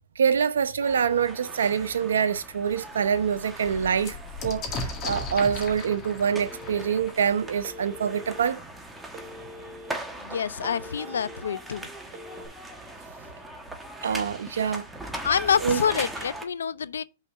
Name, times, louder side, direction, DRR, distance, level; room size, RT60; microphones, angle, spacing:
voice 1, 0.2-4.2 4.4-8.6 14.0-14.8 15.6-15.8, right 7 dB, 85° right, 0.8 m, -25 dB
sound 1, 0.8-16.4, right 1 dB, 5° right, 1.2 m, -40 dB
sound 2, 2.0-2.1 2.5-2.6 2.9-8.5 9.4-9.5 9.8-10.4, left 3 dB, 30° left, 1.7 m, -38 dB
Telephone, 6.5-7.2 7.6-8.4 9.1-9.9 10.3-11.4 12.0-12.5, left 1 dB, 35° right, 2.9 m, -43 dB
voice 2, 10.2-11.9 15.2-17.0, left 7 dB, 90° left, 0.5 m, -27 dB
5.5 x 4.1 x 5.9 m
hypercardioid pair, 130°, 0 cm